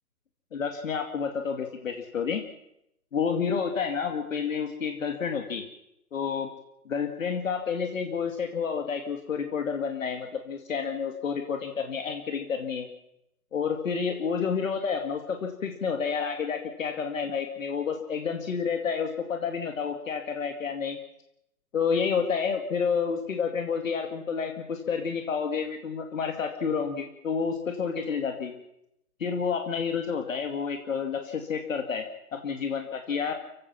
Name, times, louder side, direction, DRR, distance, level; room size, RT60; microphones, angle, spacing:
voice 1, 0.5-2.4 3.1-5.6 6.1-6.5 6.9-12.9 13.5-21.0 21.7-28.5 29.2-32.1 32.3-33.3, left 6 dB, 55° left, 4 dB, 2.5 m, -29 dB
30.0 x 16.5 x 6.0 m, 0.81 s
hypercardioid pair, 155°, 47 cm